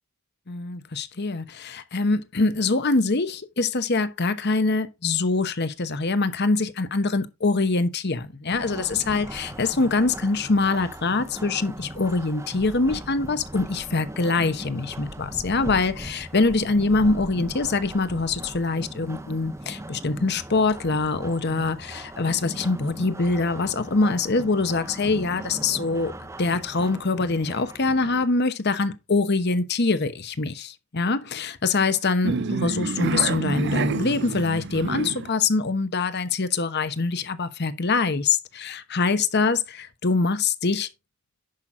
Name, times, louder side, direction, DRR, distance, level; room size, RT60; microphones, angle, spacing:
voice 1, 0.5-26.1 26.4-39.6 40.0-40.9, left 3 dB, 50° left, 1.0 m, -24 dB
sound 1, 8.5-28.3, right 1 dB, 15° right, 0.6 m, -39 dB
sound 2, 32.2-35.3, right 4 dB, 55° right, 0.6 m, -27 dB
11.0 x 5.8 x 3.7 m
head